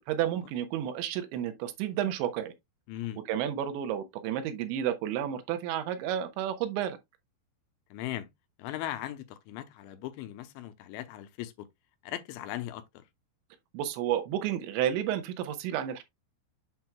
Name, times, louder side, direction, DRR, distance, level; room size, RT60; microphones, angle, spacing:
voice 1, 0.0-2.5 3.3-7.0 13.7-16.0, right 10 dB, 80° right, 3.2 m, -31 dB
voice 2, 2.9-3.2 7.9-8.3 8.6-11.7 12.0-13.0, left 13 dB, 85° left, 3.2 m, -38 dB
7.9 x 6.0 x 2.2 m
omnidirectional pair, 5.2 m